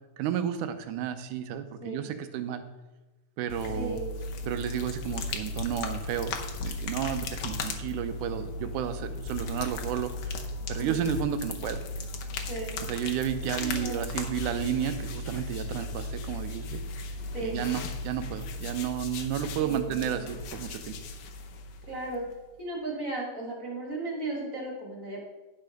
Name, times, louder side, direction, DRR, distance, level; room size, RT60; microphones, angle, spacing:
voice 1, 0.2-2.6 3.4-4.0 4.5-6.3 6.6-10.4 10.7-11.8 12.8-16.8 17.4-21.0, right 10 dB, 85° right, 9 dB, 2.2 m, -32 dB
sound 1, 3.5-22.4, left 3 dB, 70° left, 1.8 m, -36 dB
voice 2, 3.7-4.2 10.8-11.1 12.4-12.8 13.6-14.0 17.3-17.7 19.6-20.3 21.9-22.2 22.6-25.2, right 2 dB, 30° right, -3 dB, 2.4 m, -36 dB
11.0 x 5.6 x 5.1 m, 1.1 s
omnidirectional pair, 3.5 m